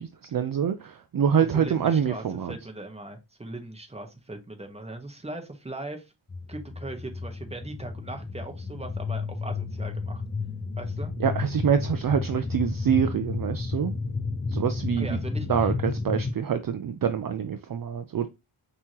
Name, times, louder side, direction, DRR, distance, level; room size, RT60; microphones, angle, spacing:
voice 1, 0.0-2.5 11.2-13.9 14.5-15.2 15.5-18.3, right 7 dB, 45° right, 0.5 m, -26 dB
voice 2, 1.4-6.1 6.5-10.2 10.8-11.1 15.0-15.7, right 2 dB, 15° right, 1.2 m, -39 dB
sound 1, 6.3-16.3, left 4 dB, 20° left, 0.5 m, -32 dB
5.4 x 3.0 x 2.9 m
wide cardioid pair, 100°, 47 cm